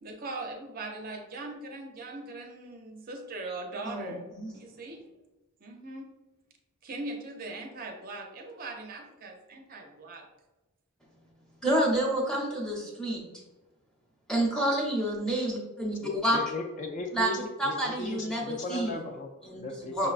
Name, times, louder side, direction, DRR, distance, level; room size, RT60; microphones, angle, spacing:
voice 1, 0.0-4.2 4.5-5.0 5.6-6.1 6.8-10.3, right 2 dB, 40° right, 2 dB, 0.5 m, -40 dB
voice 2, 3.8-4.5 11.6-13.2 14.3-16.4 17.1-17.3 17.6-19.0 19.4-19.6 19.9-20.1, right 1 dB, 5° left, -3 dB, 0.7 m, -28 dB
voice 3, 16.0-20.1, left 2 dB, 35° left, 3 dB, 0.3 m, -37 dB
5.8 x 2.2 x 2.4 m, 1.1 s
head